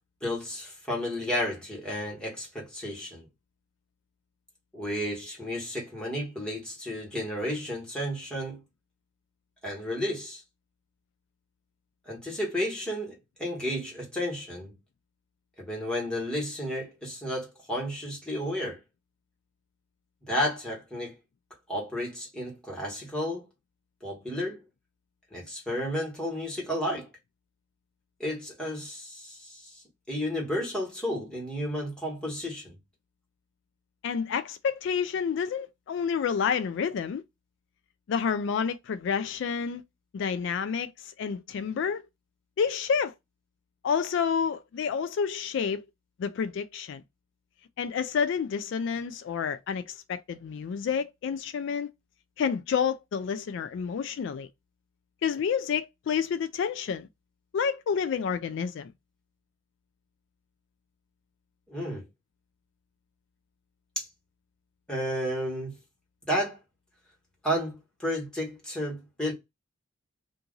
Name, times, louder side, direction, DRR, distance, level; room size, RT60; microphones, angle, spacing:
voice 1, 0.2-3.3 4.7-8.6 9.6-10.4 12.1-14.7 15.6-18.8 20.3-21.2 21.7-23.4 24.0-24.6 25.3-27.1 28.2-29.7 30.1-32.8 61.7-62.0 63.9-64.1 64.9-65.8 66.3-66.6 67.4-69.3, equal, 5° left, 1.5 m, -32 dB
voice 2, 34.0-37.2 38.1-39.8 40.1-42.0 42.6-43.1 43.8-45.8 46.2-47.0 47.8-51.9 52.4-54.5 55.2-57.1 57.5-58.9, left 6 dB, 65° left, 0.3 m, -29 dB
2.7 x 2.5 x 3.8 m
head